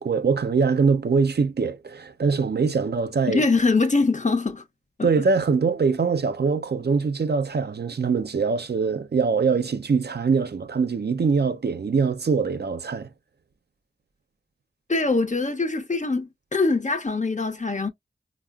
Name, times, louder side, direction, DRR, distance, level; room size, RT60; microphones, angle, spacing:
voice 1, 0.0-3.4 5.0-13.1, right 5 dB, 65° right, 0.5 m, -23 dB
voice 2, 3.3-4.6 5.0-5.1 14.9-17.9, left 3 dB, 45° left, 0.6 m, -23 dB
4.7 x 2.0 x 2.2 m
wide cardioid pair, 45°, 18 cm